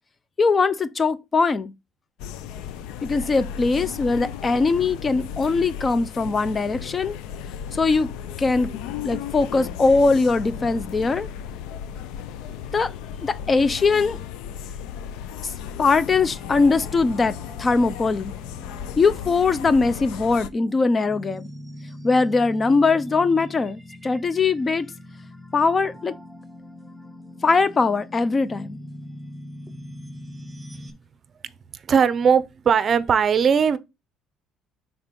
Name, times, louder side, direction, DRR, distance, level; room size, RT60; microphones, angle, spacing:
voice 1, 0.4-1.7 3.0-7.2 7.7-8.1 8.4-8.7 9.0-11.3 12.7-12.9 13.2-14.2 15.8-18.3 19.0-21.5 22.0-24.9 25.5-26.1 27.4-28.8, left 4 dB, 25° left, 0.5 m, -21 dB
sound 1, 2.2-20.5, left 8 dB, 85° left, 0.5 m, -35 dB
sound 2, 16.1-30.9, left 1 dB, ahead, 1.2 m, -42 dB
voice 2, 31.7-33.8, right 7 dB, 35° right, 0.6 m, -19 dB
6.0 x 4.0 x 5.2 m
cardioid pair, 135°, 0 cm